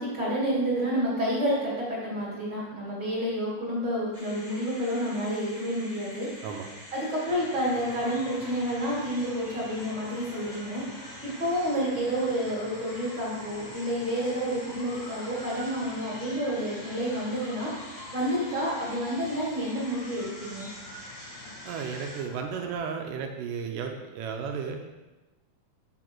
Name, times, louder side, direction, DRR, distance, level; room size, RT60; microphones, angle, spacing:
voice 1, 0.0-6.3 6.9-10.8 11.2-17.7 18.1-20.7, equal, 35° right, -6 dB, 2.6 m, -29 dB
sound 1, 4.1-22.2, equal, 45° left, 0.8 m, -46 dB
sound 2, 7.3-22.8, left 2 dB, 80° left, 3.2 m, -47 dB
voice 2, 21.7-24.8, right 6 dB, 80° right, 3 dB, 2.2 m, -34 dB
7.5 x 6.3 x 4.5 m, 1.1 s
omnidirectional pair, 3.9 m